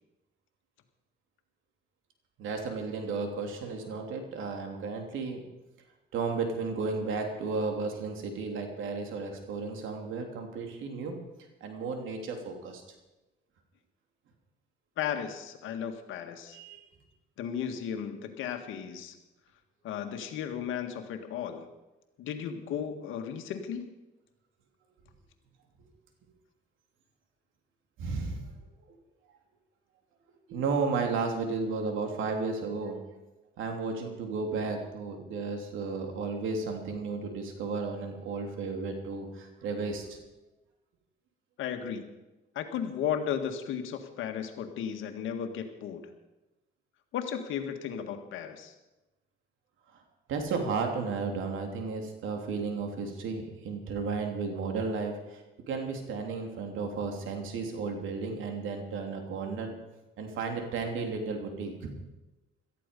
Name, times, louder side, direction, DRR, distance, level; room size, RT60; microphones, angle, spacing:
voice 1, 2.4-5.4 6.1-11.2 11.6-12.8 16.5-16.9 28.0-28.5 30.5-33.0 33.6-40.2 49.9-50.0 50.3-55.4 55.7-59.8 60.2-62.0, right 4 dB, 85° right, 4 dB, 3.1 m, -33 dB
voice 2, 15.0-16.6 17.4-19.1 19.8-21.7 22.2-23.9 41.6-42.1 42.6-46.0 47.1-48.7, left 8 dB, 85° left, 6 dB, 1.8 m, -35 dB
18.0 x 13.5 x 5.3 m, 1.0 s
cardioid pair, 90°, 20 cm